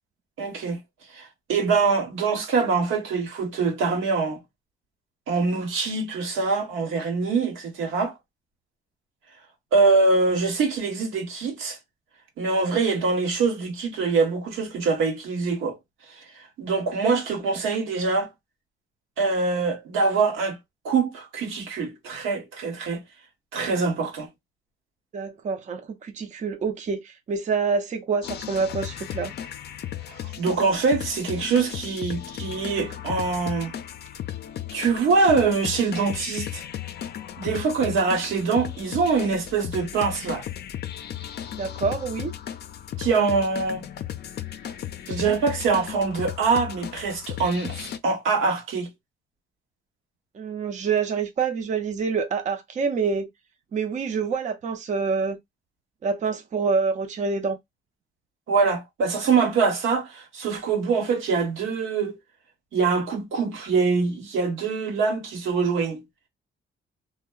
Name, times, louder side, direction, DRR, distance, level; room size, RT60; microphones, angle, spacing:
voice 1, 0.4-0.8 1.1-4.4 5.3-8.1 9.7-11.8 12.4-15.8 16.3-18.3 19.2-20.6 20.8-23.0 23.5-24.3 30.1-33.7 34.7-36.6 37.4-40.4 43.0-43.8 45.1-48.9 58.5-62.2 62.7-66.0, right 4 dB, 80° right, 0.9 m, -24 dB
voice 2, 25.1-29.3 41.6-42.3 50.3-53.3 53.7-55.4 56.0-57.6, right 5 dB, 40° right, 0.5 m, -26 dB
sound 1, 28.2-48.0, left 11 dB, 55° left, 0.4 m, -35 dB
2.7 x 2.0 x 2.3 m
cardioid pair, 90°, 20 cm